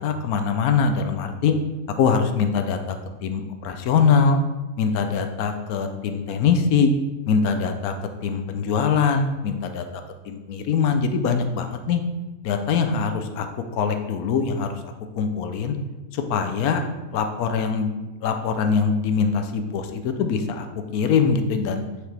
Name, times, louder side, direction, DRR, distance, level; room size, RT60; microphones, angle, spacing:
voice 1, 0.0-1.5 2.0-4.4 4.8-6.9 7.3-7.9 8.2-9.8 10.2-12.0 12.4-15.8 16.1-16.8 17.1-17.9 18.2-20.7 20.9-21.8, left 6 dB, 80° left, 6 dB, 1.1 m, -23 dB
6.4 x 4.9 x 3.3 m, 1.1 s
omnidirectional pair, 1.6 m